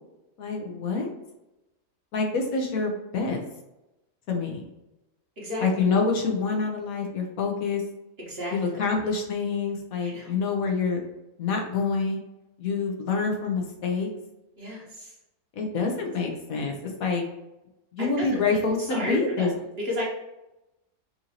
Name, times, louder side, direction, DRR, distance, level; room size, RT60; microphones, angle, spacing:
voice 1, 0.4-1.1 2.1-3.4 4.3-4.6 5.6-7.8 8.5-11.0 11.4-12.2 12.6-14.1 15.6-17.2 17.9-19.5, left 4 dB, 70° left, 2 dB, 1.2 m, -26 dB
voice 2, 5.4-5.9 8.2-8.6 10.0-10.4 14.6-15.1 18.0-18.4 18.8-19.5 19.8-20.0, left 1 dB, 45° right, -4 dB, 1.3 m, -33 dB
5.7 x 2.6 x 2.8 m, 0.94 s
omnidirectional pair, 1.6 m